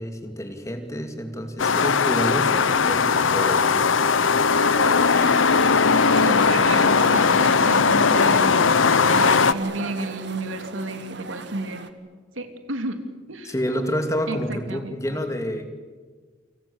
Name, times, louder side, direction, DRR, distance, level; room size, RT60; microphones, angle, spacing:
voice 1, 0.0-4.4 13.4-15.7, equal, 15° left, 6 dB, 2.6 m, -29 dB
sound 1, 1.6-9.5, left 5 dB, 75° left, 0.8 m, -19 dB
sound 2, 4.6-11.9, right 3 dB, 60° right, 1.8 m, -34 dB
voice 2, 5.9-8.7 9.0-11.8 12.4-13.0 13.3-13.5 14.3-15.0, right 2 dB, 85° right, 7 dB, 2.8 m, -32 dB
29.5 x 25.5 x 7.2 m, 1.5 s
head